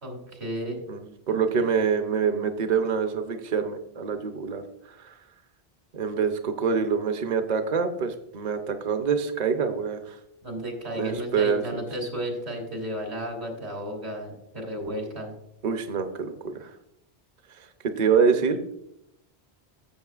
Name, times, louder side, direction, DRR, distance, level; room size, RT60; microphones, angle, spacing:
voice 1, 0.0-0.8 1.3-1.7 10.4-15.3, equal, 75° right, 2 dB, 2.9 m, -33 dB
voice 2, 0.9-5.2 5.9-10.2 11.0-11.8 15.6-16.7 17.6-18.8, right 6 dB, 45° right, 6 dB, 0.7 m, -26 dB
14.0 x 7.4 x 2.4 m, 0.80 s
omnidirectional pair, 1.1 m